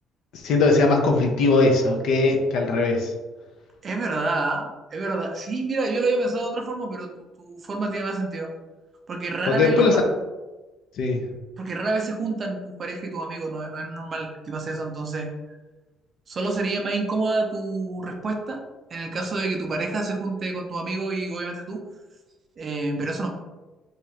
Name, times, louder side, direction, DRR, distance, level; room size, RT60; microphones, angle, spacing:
voice 1, 0.3-3.1 9.5-10.0 11.0-11.2, left 3 dB, 70° left, 3 dB, 0.5 m, -20 dB
voice 2, 3.8-7.1 7.4-8.5 9.1-10.0 11.6-15.3 16.3-18.6 18.9-21.8 22.6-23.3, right 3 dB, 35° right, 2 dB, 0.4 m, -28 dB
2.7 x 2.3 x 3.1 m, 1.2 s
cardioid pair, 145°, 0 cm